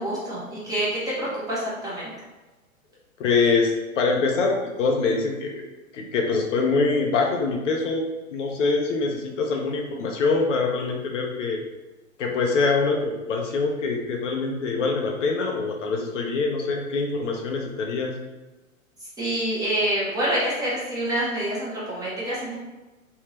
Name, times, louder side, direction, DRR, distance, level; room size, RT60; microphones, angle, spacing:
voice 1, 0.0-2.1 19.0-22.6, right 1 dB, 10° right, -8 dB, 1.0 m, -27 dB
voice 2, 3.2-5.6 5.9-8.0 8.3-11.6 12.2-18.1, left 4 dB, 60° left, 1 dB, 0.7 m, -24 dB
3.4 x 2.7 x 3.1 m, 1.1 s
hypercardioid pair, 130°, 42 cm